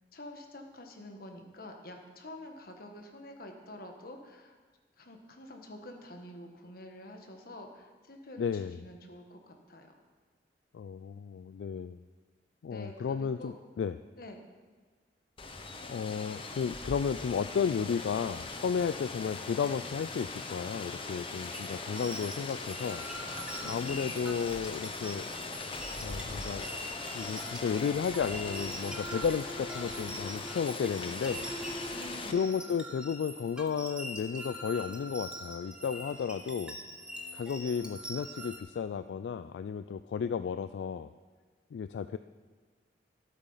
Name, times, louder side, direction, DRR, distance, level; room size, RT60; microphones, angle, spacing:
voice 1, 0.1-4.5 5.0-9.9 12.7-13.5 14.2-14.4 23.6-24.2 31.9-32.7, left 1 dB, 55° left, 4 dB, 1.4 m, -47 dB
voice 2, 8.4-8.8 10.7-12.0 12.6-14.0 15.9-23.1 23.7-25.3 26.0-26.7 27.1-31.5 32.3-36.8 37.3-41.1 41.7-42.2, left 6 dB, 80° left, 12 dB, 0.3 m, -33 dB
Rain, 15.4-32.3, left 3 dB, 30° left, 0.9 m, -40 dB
sound 1, 21.3-38.6, equal, 5° right, 1.1 m, -43 dB
12.0 x 8.5 x 5.6 m, 1.4 s
head